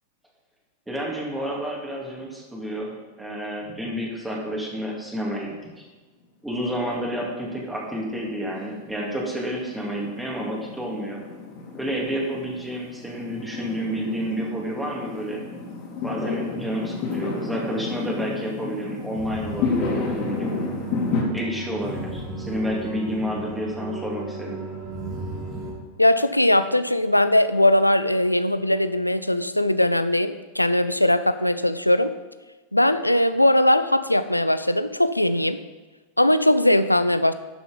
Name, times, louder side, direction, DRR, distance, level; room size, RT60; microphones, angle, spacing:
voice 1, 0.9-2.9 3.2-5.8 6.4-11.2 11.8-15.4 16.0-20.5 21.3-24.6, equal, 5° right, -2 dB, 2.4 m, -30 dB
Fireworks, 6.7-21.2, left 4 dB, 40° left, 2.9 m, -32 dB
Drum, 16.0-21.6, equal, 50° right, 2.7 m, -46 dB
sound 1, 19.1-25.7, right 2 dB, 35° right, 3.4 m, -35 dB
voice 2, 26.0-32.1 32.7-35.6 36.2-37.3, left 1 dB, 85° left, 12 dB, 0.5 m, -20 dB
11.5 x 6.8 x 5.2 m, 1.2 s
figure-of-eight pair, 90°, 0 cm